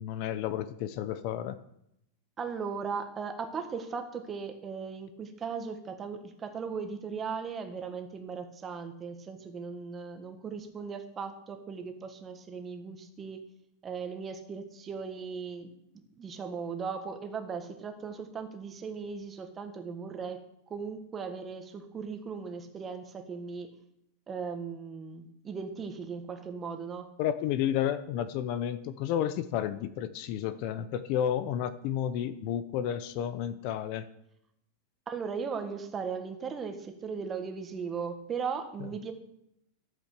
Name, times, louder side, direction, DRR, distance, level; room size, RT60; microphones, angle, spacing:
voice 1, 0.0-1.6 27.2-34.0, left 10 dB, 50° left, 13 dB, 0.8 m, -31 dB
voice 2, 2.4-13.4 13.8-15.7 16.2-23.7 24.3-27.1 35.1-39.1, right 5 dB, 20° right, 6 dB, 1.6 m, -38 dB
12.5 x 8.9 x 6.7 m, 0.79 s
supercardioid pair, 150°, 0 cm